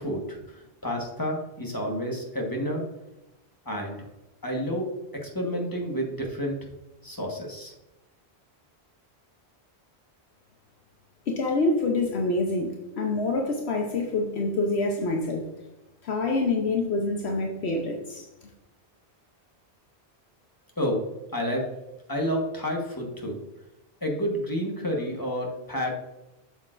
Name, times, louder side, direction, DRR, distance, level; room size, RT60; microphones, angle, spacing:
voice 1, 0.0-2.8 3.6-4.0 4.4-4.8 5.1-6.6 7.0-7.7 20.8-21.0 21.3-21.7 22.1-23.4 24.0-25.9, equal, 20° left, 0 dB, 1.4 m, -30 dB
voice 2, 11.3-15.4 16.0-18.3, left 2 dB, 75° left, 2 dB, 1.1 m, -26 dB
7.8 x 6.9 x 2.5 m, 0.95 s
omnidirectional pair, 1.1 m